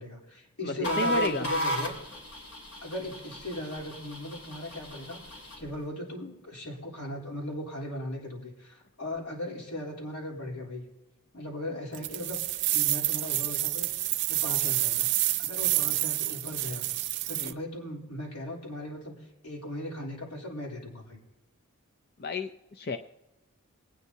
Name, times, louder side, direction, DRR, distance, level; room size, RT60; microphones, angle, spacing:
voice 1, 0.0-1.9 2.8-5.2 5.6-10.8 11.3-12.4 12.7-15.1 15.4-16.8 17.3-19.2 19.4-21.2, left 1 dB, 85° left, -2 dB, 3.4 m, -37 dB
voice 2, 0.6-1.5 17.4-17.5 22.2-23.0, left 2 dB, 45° left, 6 dB, 0.5 m, -32 dB
sound 1, 0.8-5.7, equal, 70° left, 2.7 m, -35 dB
sound 2, 11.9-17.5, right 16 dB, 50° right, 0.5 m, -28 dB
24.0 x 9.3 x 2.7 m, 1.0 s
head